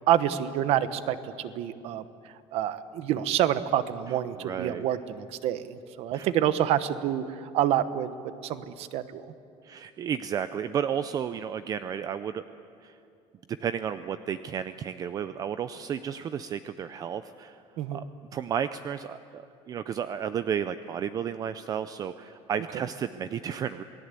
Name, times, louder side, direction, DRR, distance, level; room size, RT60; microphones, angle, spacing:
voice 1, 0.0-8.1 8.4-9.3 17.8-18.0 22.7-22.8, right 11 dB, 60° right, 13 dB, 1.1 m, -28 dB
voice 2, 4.4-4.8 6.1-6.3 9.6-12.4 12.8-12.9 13.6-17.6 17.9-18.0 18.3-23.8, right 8 dB, 30° right, 12 dB, 0.5 m, -32 dB
28.0 x 19.0 x 8.3 m, 2.5 s
cardioid pair, 170°, 12 cm